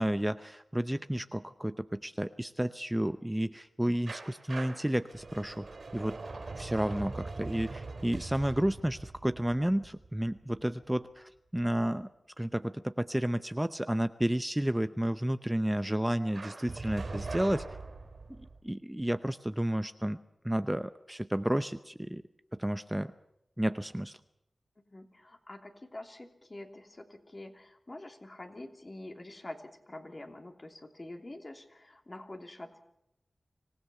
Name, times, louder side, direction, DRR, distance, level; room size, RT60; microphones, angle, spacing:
voice 1, 0.0-5.7 5.9-6.2 6.6-12.1 12.4-17.6 18.4-20.2 20.4-22.2 22.6-23.1 23.6-24.2, right 1 dB, 10° right, 11 dB, 0.7 m, -31 dB
sound 1, 4.1-10.8 16.3-18.6, right 3 dB, 70° right, 4.0 m, -42 dB
voice 2, 24.9-32.8, left 1 dB, 40° left, 4 dB, 3.1 m, -46 dB
25.5 x 16.5 x 7.0 m, 0.82 s
cardioid pair, 40°, 0 cm